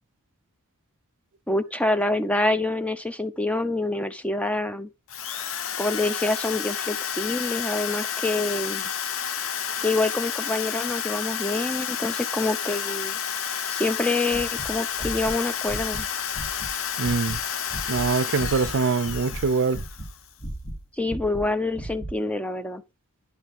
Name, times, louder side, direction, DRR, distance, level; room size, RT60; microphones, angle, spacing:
voice 1, 1.5-4.9 5.8-8.9 9.8-13.2 13.7-16.1 21.0-22.8, left 2 dB, 5° left, 0.6 m, -26 dB
Drill, 5.1-20.3, left 8 dB, 65° left, 0.7 m, -30 dB
sound 1, 14.3-16.7 17.0-17.4 17.7-18.8 19.0-20.1 20.4-22.2, right 1 dB, 30° left, 3.5 m, -36 dB
voice 2, 17.0-17.4 17.9-19.8, right 4 dB, 60° right, 0.5 m, -24 dB
10.5 x 5.8 x 3.5 m
head